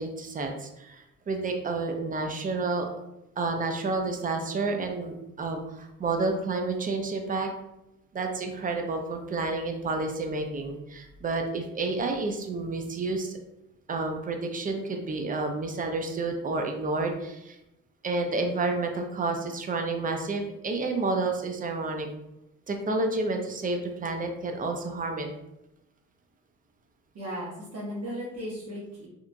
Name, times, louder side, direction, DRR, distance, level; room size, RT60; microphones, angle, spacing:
voice 1, 0.0-2.9 3.4-7.5 8.1-13.4 13.9-17.6 18.0-22.1 22.7-25.3, right 3 dB, 30° right, 4 dB, 0.4 m, -30 dB
voice 2, 27.1-29.1, equal, 55° right, -6 dB, 0.9 m, -36 dB
2.8 x 2.3 x 2.5 m, 0.89 s
cardioid pair, 90°, 30 cm